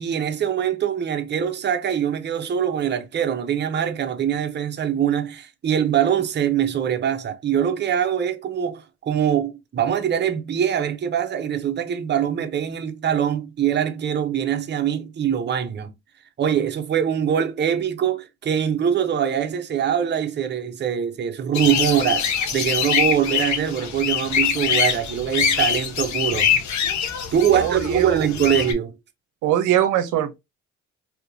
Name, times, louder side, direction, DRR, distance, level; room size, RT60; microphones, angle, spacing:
voice 1, 0.0-15.9 16.4-26.5 27.3-29.0, right 9 dB, 35° right, 0.6 m, -23 dB
sound 1, 21.5-28.7, left 8 dB, 70° left, 0.8 m, -24 dB
voice 2, 27.5-28.3 29.4-30.4, right 11 dB, 85° right, 0.6 m, -22 dB
3.5 x 2.7 x 2.6 m
cardioid pair, 90°, 30 cm